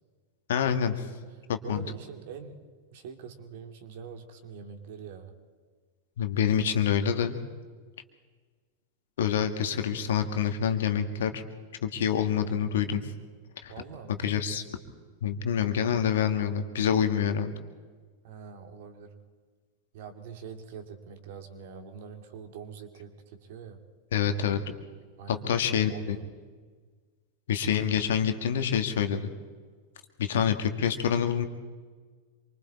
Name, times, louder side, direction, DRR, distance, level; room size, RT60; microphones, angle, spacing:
voice 1, 0.5-1.1 1.5-1.8 6.2-7.4 9.2-11.4 11.8-13.1 13.6-13.7 14.2-14.6 15.2-17.5 24.1-24.6 25.3-26.2 27.5-29.3 30.2-31.5, left 8 dB, 60° left, 7 dB, 1.8 m, -26 dB
voice 2, 1.6-2.6 2.9-5.4 13.7-14.3 18.2-19.2 19.9-23.8 25.2-26.2, right 6 dB, 50° right, 5 dB, 2.6 m, -44 dB
27.0 x 24.0 x 4.3 m, 1.5 s
figure-of-eight pair, 90°, 0 cm